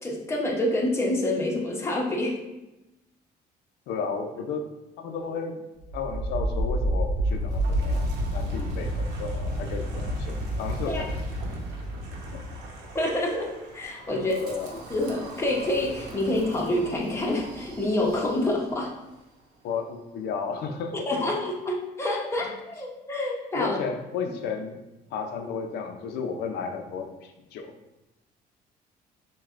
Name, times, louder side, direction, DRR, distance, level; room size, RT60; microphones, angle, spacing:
voice 1, 0.0-2.4 10.9-11.0 12.9-14.3 14.9-18.9 21.1-23.8, left 1 dB, 15° left, -2 dB, 0.8 m, -27 dB
voice 2, 3.9-4.7 5.0-5.6 5.9-8.1 8.3-11.1 12.3-12.4 14.1-14.7 19.6-21.1 22.4-22.5 23.5-24.8 25.1-27.7, left 5 dB, 80° left, 5 dB, 0.6 m, -33 dB
Wind, 5.8-18.8, equal, 90° right, 0.8 m, -31 dB
6.3 x 2.3 x 2.5 m, 0.99 s
cardioid pair, 110°, 17 cm